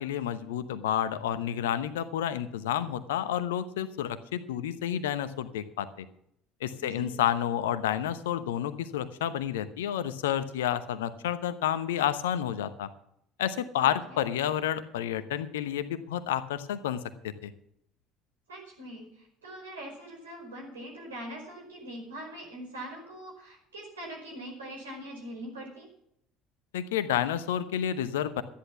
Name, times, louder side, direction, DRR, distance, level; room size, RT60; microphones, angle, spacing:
voice 1, 0.0-6.1 6.6-12.9 13.4-17.5 26.7-28.4, left 10 dB, 70° left, 13 dB, 0.9 m, -30 dB
voice 2, 6.8-7.2 13.8-14.2 18.5-25.9, right 1 dB, 80° right, -1 dB, 5.1 m, -42 dB
13.0 x 10.5 x 5.9 m, 0.73 s
figure-of-eight pair, 60°, 0 cm